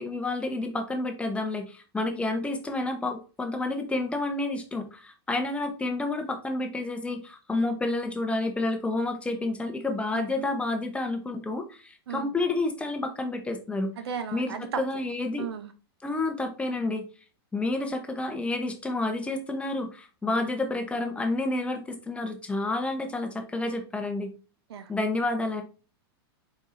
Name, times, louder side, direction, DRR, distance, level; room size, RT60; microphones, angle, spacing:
voice 1, 0.0-13.9 14.3-15.4 16.0-17.0 17.5-24.3 24.9-25.6, left 2 dB, 10° left, 0.8 m, -30 dB
voice 2, 14.0-14.8 15.4-15.7 24.7-24.9, right 7 dB, 90° right, 0.8 m, -35 dB
4.5 x 4.3 x 2.6 m
hypercardioid pair, 130°, 13 cm